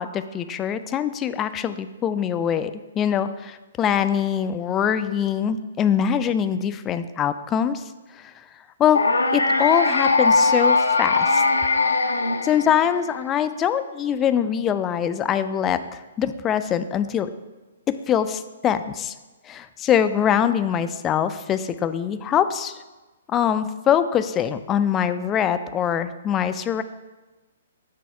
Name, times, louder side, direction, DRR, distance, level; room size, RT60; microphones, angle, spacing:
voice 1, 0.0-7.8 8.1-8.3 8.8-9.0 9.3-11.4 12.4-17.3 18.1-19.1 19.4-22.8 23.3-26.8, left 9 dB, 20° left, 11 dB, 0.3 m, -23 dB
sound 1, 8.9-13.1, left 3 dB, 85° left, 0.5 m, -20 dB
6.1 x 4.1 x 4.8 m, 1.2 s
figure-of-eight pair, 125°, 0 cm